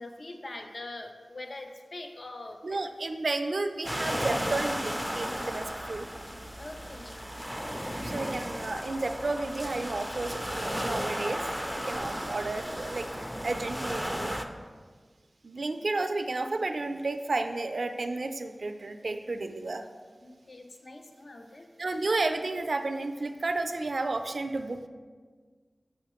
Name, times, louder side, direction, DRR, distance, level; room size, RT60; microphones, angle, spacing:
voice 1, 0.0-2.8 6.6-7.2 8.7-8.8 11.7-12.0 20.2-21.7, left 2 dB, 60° left, 4 dB, 0.5 m, -43 dB
voice 2, 2.6-6.1 8.0-11.4 11.8-13.1 13.4-14.4 15.4-19.9 21.8-24.9, right 2 dB, 70° right, 7 dB, 0.4 m, -32 dB
sound 1, 3.8-14.4, equal, ahead, 0.4 m, -34 dB
6.1 x 5.7 x 3.0 m, 1.5 s
wide cardioid pair, 60°, 0 cm